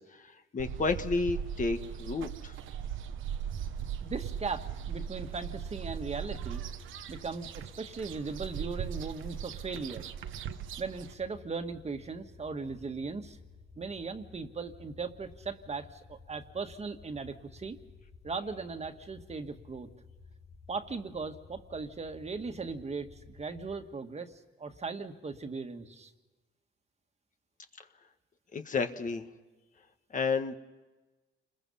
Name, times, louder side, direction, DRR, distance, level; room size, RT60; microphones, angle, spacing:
voice 1, 0.0-2.5 28.5-29.3 30.1-30.5, left 4 dB, 40° left, 7 dB, 1.5 m, -31 dB
sound 1, 0.6-11.1, right 8 dB, 80° right, 1.1 m, -39 dB
sound 2, 4.0-23.8, left 5 dB, 65° left, 2.7 m, -55 dB
voice 2, 4.0-6.6 7.1-10.1 10.8-13.4 13.8-17.8 18.2-19.9 20.7-26.1, right 4 dB, 35° right, 7 dB, 1.8 m, -38 dB
29.0 x 21.5 x 5.6 m, 1.2 s
cardioid pair, 90°, 20 cm